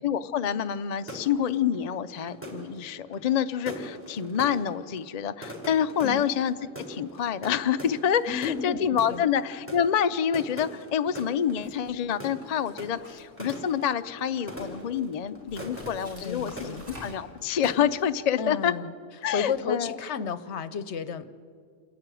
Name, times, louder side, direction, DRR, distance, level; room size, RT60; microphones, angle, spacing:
voice 1, 0.0-6.5 6.9-16.8 17.0-18.7 19.2-20.0, left 8 dB, 50° left, 10 dB, 0.5 m, -27 dB
sound 1, 1.0-17.4 17.6-18.2, equal, 10° right, 3.6 m, -42 dB
voice 2, 8.3-8.8 9.1-9.2 16.2-16.9 18.4-18.9 19.3-21.3, left 6 dB, 65° left, 14 dB, 1.0 m, -32 dB
sound 2, 11.5-11.9 12.4-13.9 14.2-14.8 15.5-17.4, left 1 dB, 50° right, 5.8 m, -47 dB
28.0 x 11.0 x 9.1 m, 2.1 s
omnidirectional pair, 1.3 m